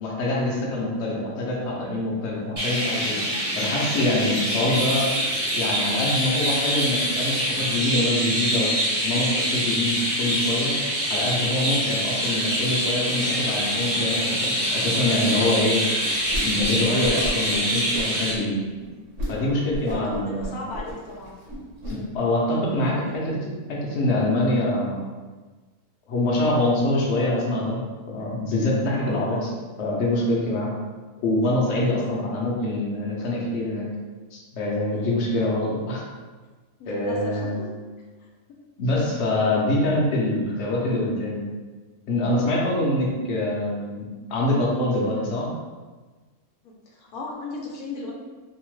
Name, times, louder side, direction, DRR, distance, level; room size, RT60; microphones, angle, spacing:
voice 1, 0.0-3.2 3.5-5.1 5.5-8.7 9.0-10.8 11.1-15.8 16.4-18.6 19.3-20.6 21.9-25.1 26.1-27.8 28.1-29.5 29.8-30.7 31.2-33.9 34.3-36.0 36.9-37.6 38.8-41.5 42.1-44.0 44.3-45.5, left 1 dB, 60° left, -4 dB, 0.8 m, -25 dB
Chirp tweet, 2.6-18.3, equal, 35° right, 0.7 m, -25 dB
voice 2, 4.5-4.8 12.1-12.4 17.6-18.0 19.9-21.3 21.8-22.3 22.9-23.2 28.9-29.6 31.8-32.3 34.9-35.5 36.8-37.7 39.0-39.1 46.6-48.1, left 3 dB, 80° left, -1 dB, 1.1 m, -38 dB
Whoosh swoosh swish, 16.3-16.8 17.0-17.5 17.9-18.4 18.8-18.9 19.2-19.4 19.7-21.9, equal, 60° right, 1.0 m, -32 dB
2.8 x 2.1 x 3.0 m, 1.3 s
omnidirectional pair, 1.6 m